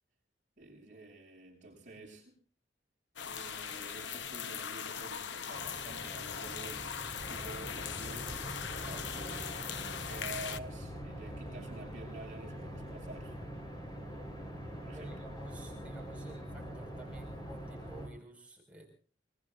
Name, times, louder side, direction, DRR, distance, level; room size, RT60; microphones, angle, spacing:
voice 1, 0.6-2.4 3.2-8.5 8.9-13.4 14.8-15.3, right 2 dB, 40° right, -7 dB, 7.8 m, -49 dB
sound 1, 3.2-10.6, left 7 dB, 85° left, 0.9 m, -40 dB
sound 2, 5.5-18.1, equal, 25° left, 4.0 m, -44 dB
voice 2, 14.9-18.9, right 2 dB, 5° right, -1 dB, 5.0 m, -52 dB
24.5 x 23.5 x 2.5 m, 0.41 s
head